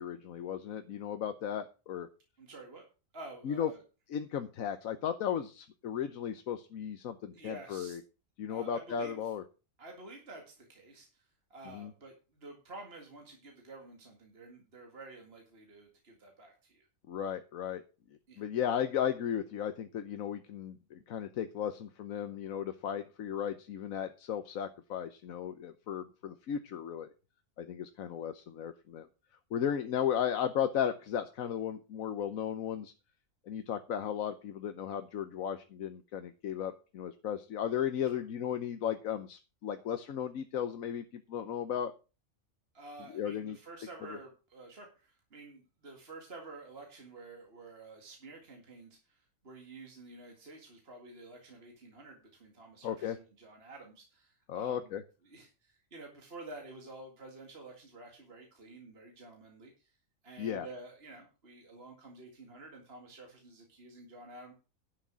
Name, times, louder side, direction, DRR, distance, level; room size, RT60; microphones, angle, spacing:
voice 1, 0.0-2.1 3.4-3.7 4.1-8.0 8.4-9.4 11.7-11.9 17.1-17.8 18.4-27.1 27.6-29.1 29.5-32.9 33.5-41.9 43.1-43.6 44.0-44.2 52.8-53.2 54.5-55.0 60.4-60.7, left 9 dB, 90° left, 9 dB, 1.3 m, -35 dB
voice 2, 2.4-2.8 3.1-3.8 7.3-8.0 8.5-9.3 9.8-16.9 18.3-18.5 38.1-38.2 42.7-54.9 55.2-60.0 60.2-64.5, right 2 dB, 50° right, 2 dB, 2.3 m, -50 dB
11.5 x 6.5 x 6.2 m, 0.32 s
omnidirectional pair, 1.4 m